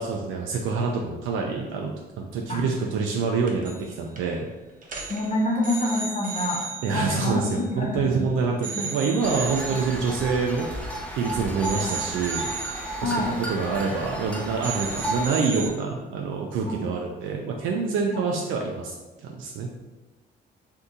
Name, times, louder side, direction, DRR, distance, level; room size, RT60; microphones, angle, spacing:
voice 1, 0.0-4.5 6.8-12.5 13.0-13.1 13.5-19.7, right 4 dB, 85° right, 0 dB, 0.4 m, -26 dB
sound 1, 3.5-3.9 4.2-4.4 4.8-8.2 8.6-11.2 11.6-14.3 14.6-15.7, right 4 dB, 40° right, 0.7 m, -36 dB
voice 2, 5.1-8.1 8.7-8.9 9.6-9.8 11.7-12.0 13.0-13.3 16.6-16.8 18.1-18.2, left 1 dB, 35° left, -1 dB, 0.9 m, -27 dB
sound 2, 9.2-15.3, right 1 dB, 5° left, 0.6 m, -33 dB
2.7 x 2.6 x 3.5 m, 1.2 s
cardioid pair, 90°, 20 cm